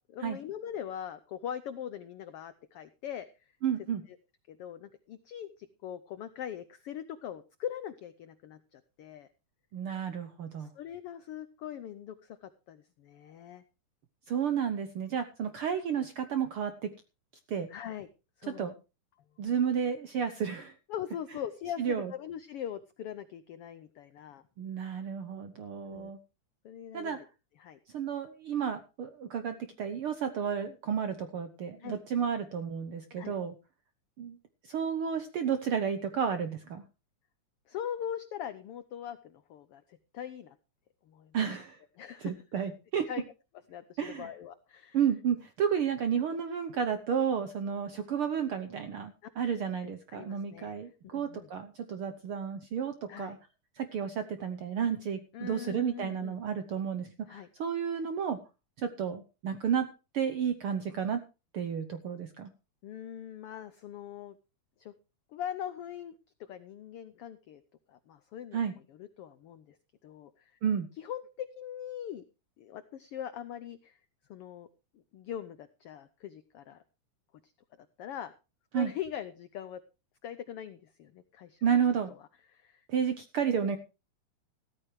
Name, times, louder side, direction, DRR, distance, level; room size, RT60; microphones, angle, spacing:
voice 1, 0.0-3.5 4.1-4.2 4.5-9.3 10.6-13.6 17.7-18.1 18.4-18.7 20.9-24.4 25.8-26.1 26.6-27.2 27.6-27.8 31.8-32.0 33.2-33.4 37.7-40.6 41.0-41.6 42.0-42.3 43.1-43.2 43.7-45.0 49.2-49.3 49.8-50.8 51.1-51.5 53.1-53.4 55.3-56.4 57.3-57.5 62.8-64.4 64.8-64.9 65.3-67.6 67.9-68.6 68.9-69.8 70.0-70.6 71.0-72.2 72.6-74.0 74.3-74.7 74.9-76.8 77.4-77.5 78.0-78.3 78.7-79.8 80.2-81.6 82.1-82.2 82.5-82.9, left 9 dB, 85° left, 12 dB, 1.2 m, -41 dB
voice 2, 3.6-4.0 9.7-10.7 14.3-16.9 17.5-17.7 18.5-18.7 19.4-20.7 21.8-22.1 24.6-26.2 26.9-27.2 27.9-33.5 34.2-34.4 34.6-36.8 41.3-41.8 42.2-43.1 44.0-44.3 44.9-53.4 53.8-58.4 58.8-59.9 60.1-61.2 61.5-62.5 68.5-68.7 70.6-70.9 78.7-78.9 81.6-82.1 82.9-83.8, right 7 dB, 70° right, 9 dB, 1.3 m, -32 dB
15.0 x 13.5 x 3.2 m, 0.30 s
omnidirectional pair, 3.6 m